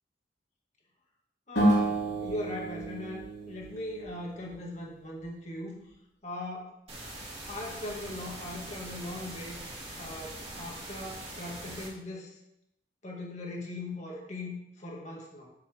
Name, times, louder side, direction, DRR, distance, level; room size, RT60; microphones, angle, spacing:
voice 1, 1.5-5.8 6.2-6.7 7.5-9.6 10.0-12.3 13.0-15.5, left 1 dB, 40° left, -2 dB, 2.1 m, -39 dB
sound 1, 1.6-4.7, right 1 dB, 85° left, 3.3 m, -30 dB
sound 2, 6.9-11.9, right 1 dB, 35° right, 2.5 m, -42 dB
8.6 x 7.4 x 3.6 m, 0.83 s
head